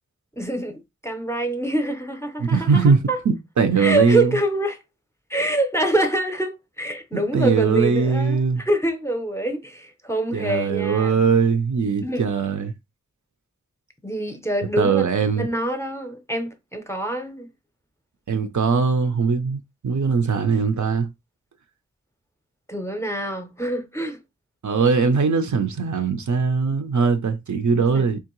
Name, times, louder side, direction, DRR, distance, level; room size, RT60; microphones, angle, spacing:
voice 1, 0.4-3.2 3.8-4.8 5.3-11.2 12.0-12.2 14.0-15.1 15.4-17.5 22.7-24.2 27.7-28.1, right 1 dB, 10° left, 0.6 m, -25 dB
voice 2, 2.4-3.0 3.3-4.4 7.1-8.6 10.3-12.7 14.8-15.5 18.3-21.1 24.6-28.2, right 5 dB, 70° right, 0.6 m, -21 dB
3.6 x 3.0 x 3.0 m
wide cardioid pair, 85°, 31 cm